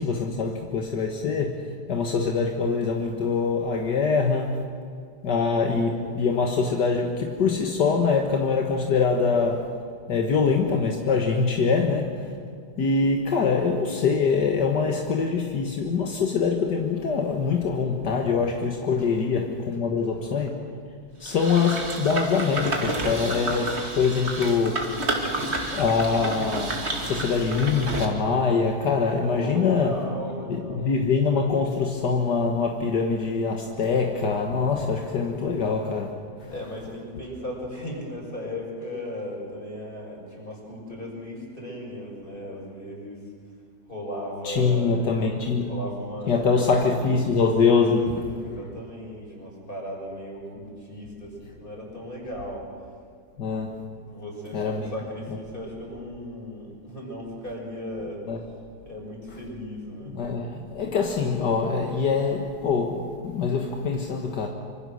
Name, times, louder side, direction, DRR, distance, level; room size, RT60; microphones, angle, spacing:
voice 1, 0.0-4.6 5.2-9.8 10.1-12.3 12.8-20.7 21.2-25.0 25.6-30.0 30.5-36.2 44.4-45.7 46.3-48.3 53.4-53.8 54.5-54.9 58.3-58.4 60.1-64.5, left 5 dB, 75° left, 2.1 m, -24 dB
sound 1, 21.3-28.1, right 2 dB, 40° right, 2.5 m, -30 dB
voice 2, 29.2-31.0 36.5-43.3 43.8-45.0 45.6-47.2 47.7-52.7 54.1-58.2 58.8-60.2, equal, 30° left, 6.5 m, -36 dB
25.5 x 25.5 x 6.4 m
omnidirectional pair, 1.8 m